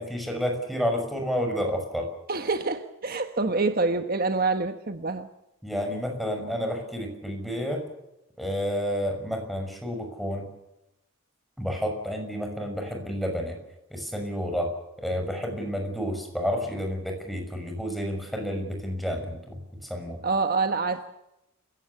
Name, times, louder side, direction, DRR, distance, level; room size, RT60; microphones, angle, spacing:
voice 1, 0.0-2.1 5.6-7.8 8.4-10.5 11.6-13.6 13.9-14.7 15.0-20.2, equal, ahead, 3 dB, 6.2 m, -30 dB
voice 2, 2.3-5.3 20.2-21.1, right 3 dB, 45° right, 7 dB, 1.3 m, -26 dB
29.5 x 16.5 x 7.1 m, 0.89 s
head